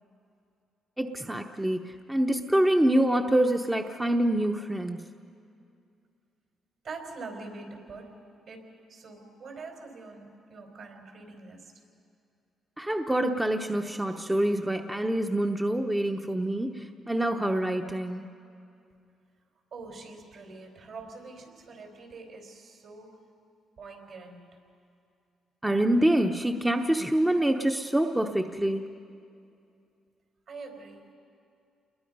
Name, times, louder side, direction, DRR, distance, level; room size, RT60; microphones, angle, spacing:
voice 1, 1.0-5.0 12.8-18.2 25.6-28.9, right 1 dB, 10° right, 4 dB, 0.8 m, -26 dB
voice 2, 6.8-8.2 8.5-11.7 17.6-17.8 19.7-23.2 23.8-24.5 30.5-31.1, right 3 dB, 60° right, 3 dB, 4.5 m, -44 dB
28.5 x 21.5 x 5.4 m, 2.5 s
cardioid pair, 90°, 0 cm